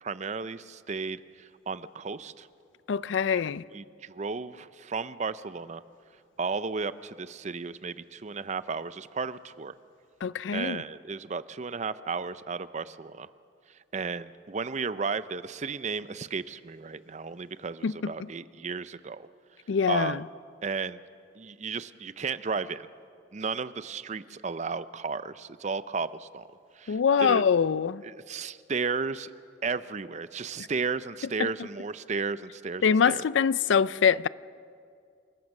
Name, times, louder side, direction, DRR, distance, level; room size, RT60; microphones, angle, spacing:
voice 1, 0.0-2.5 3.3-3.4 3.7-5.8 6.4-9.7 10.5-13.3 13.9-19.3 19.9-20.2 20.6-21.0 21.4-22.9 23.3-26.5 26.8-27.5 28.0-29.3 29.6-33.3, right 4 dB, 40° right, 0.5 m, -34 dB
voice 2, 2.9-3.6 10.2-10.8 17.8-18.1 19.7-20.2 26.9-28.0 31.4-31.5 32.8-34.3, left 6 dB, 80° left, 0.4 m, -24 dB
28.0 x 15.5 x 6.5 m
head